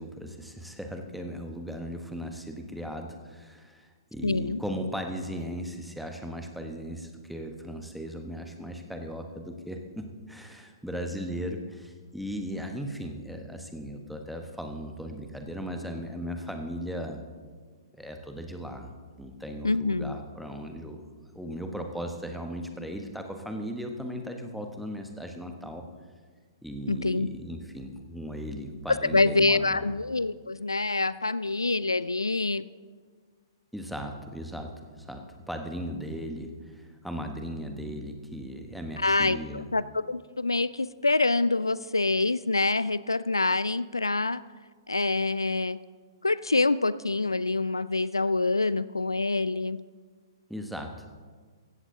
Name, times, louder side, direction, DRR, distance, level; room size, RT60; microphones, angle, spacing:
voice 1, 0.0-17.2 17.9-18.9 19.2-21.0 21.3-25.8 26.6-29.9 33.7-34.7 35.0-39.7 50.5-51.1, equal, ahead, 4 dB, 1.1 m, -37 dB
voice 2, 4.2-4.6 19.6-20.2 26.9-27.3 28.9-32.6 39.0-44.4 44.9-45.8 46.2-49.8, left 3 dB, 85° left, 17 dB, 0.3 m, -26 dB
16.5 x 13.5 x 2.8 m, 1.5 s
figure-of-eight pair, 115°, 2 cm